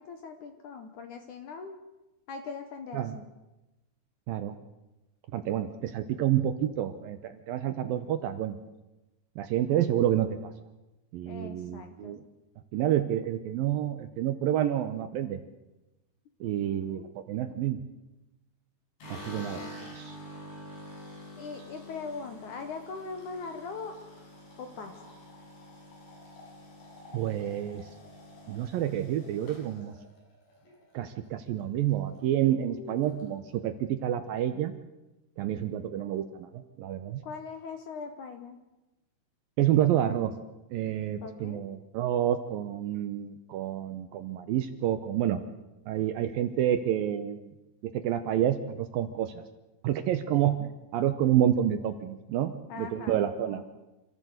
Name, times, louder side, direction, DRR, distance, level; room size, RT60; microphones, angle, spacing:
voice 1, 0.0-1.7 2.3-3.3 11.3-12.2 16.4-17.1 19.3-19.9 21.4-24.0 24.6-25.0 32.6-33.2 35.9-36.0 37.2-38.6 41.2-41.6 52.7-53.6, left 4 dB, 65° left, 7 dB, 2.0 m, -41 dB
voice 2, 5.3-8.6 9.4-10.5 11.1-12.2 12.7-15.4 16.4-17.8 19.1-19.6 19.9-20.2 27.1-27.8 28.5-29.9 30.9-34.7 35.4-37.2 39.6-40.3 40.7-45.4 45.9-47.5 47.8-49.3 49.8-53.6, right 11 dB, 75° right, 10 dB, 2.3 m, -29 dB
sound 1, 19.0-31.3 31.6-32.2 32.5-32.6 32.9-33.6, left 1 dB, 85° left, 8.8 m, -47 dB
26.5 x 14.5 x 8.0 m, 1.0 s
omnidirectional pair, 4.9 m